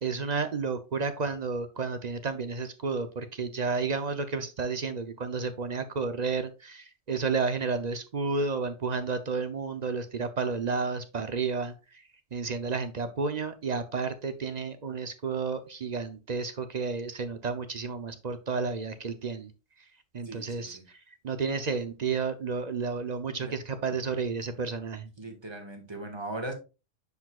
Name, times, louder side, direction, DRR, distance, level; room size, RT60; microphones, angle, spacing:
voice 1, 0.0-11.7 12.3-19.5 20.1-20.8 21.2-25.1, right 4 dB, 45° right, 10 dB, 0.7 m, -31 dB
voice 2, 20.2-20.8 23.4-23.6 25.2-26.5, right 2 dB, 25° right, 3 dB, 1.5 m, -39 dB
9.6 x 4.9 x 2.3 m, 0.30 s
omnidirectional pair, 1.1 m